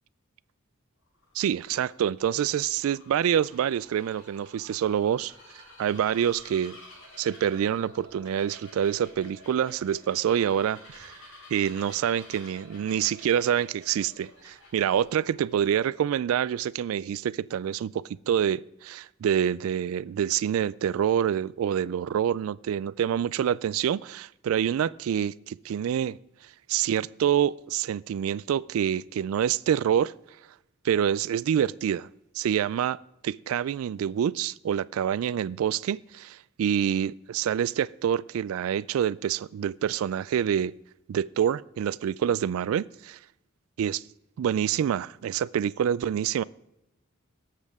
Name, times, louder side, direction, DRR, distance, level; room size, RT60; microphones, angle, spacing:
Bird vocalization bird call bird song, 1.1-16.1, left 1 dB, 65° left, 5.2 m, -51 dB
voice 1, 1.3-5.3 5.8-6.8 7.2-11.2 11.5-26.2 26.7-30.1 30.8-32.1 32.3-33.0 33.2-40.7 41.1-43.2 43.8-44.0 44.4-46.4, right 9 dB, 80° right, 0.3 m, -26 dB
18.5 x 7.5 x 3.5 m
head